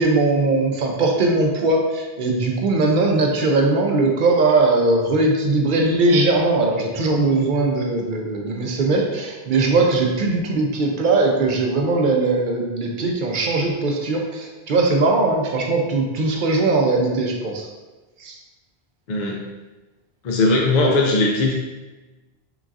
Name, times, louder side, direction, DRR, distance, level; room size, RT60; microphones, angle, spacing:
voice 1, 0.0-17.7 18.2-18.3, right 3 dB, 60° right, 1 dB, 0.7 m, -20 dB
voice 2, 19.1-19.4 20.2-21.5, left 2 dB, 55° left, -1 dB, 0.6 m, -19 dB
3.9 x 3.5 x 2.5 m, 1.2 s
omnidirectional pair, 1.0 m